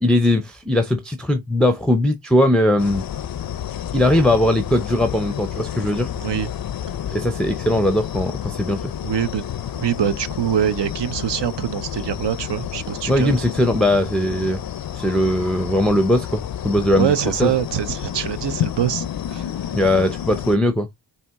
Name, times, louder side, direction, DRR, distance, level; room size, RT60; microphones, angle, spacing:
voice 1, 0.0-3.0 3.9-6.1 7.1-8.9 13.1-14.6 14.9-17.1 17.4-17.5 19.7-20.9, left 1 dB, ahead, 0.5 m, -19 dB
sound 1, 2.8-20.6, left 10 dB, 50° left, 0.4 m, -30 dB
voice 2, 6.2-6.5 9.0-9.4 9.8-13.3 17.0-19.4, right 9 dB, 65° right, 0.6 m, -24 dB
4.3 x 2.8 x 3.5 m
cardioid pair, 65°, 46 cm